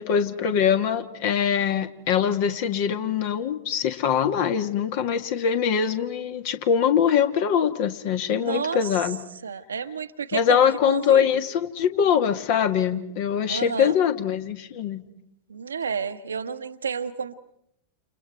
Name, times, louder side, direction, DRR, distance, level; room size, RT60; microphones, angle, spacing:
voice 1, 0.0-9.2 10.3-15.0, left 8 dB, 50° left, 8 dB, 1.8 m, -23 dB
voice 2, 8.3-9.0 9.4-11.3 13.4-14.0 15.5-17.4, right 6 dB, 70° right, 9 dB, 1.1 m, -31 dB
29.5 x 29.5 x 4.6 m, 0.74 s
figure-of-eight pair, 90°, 0 cm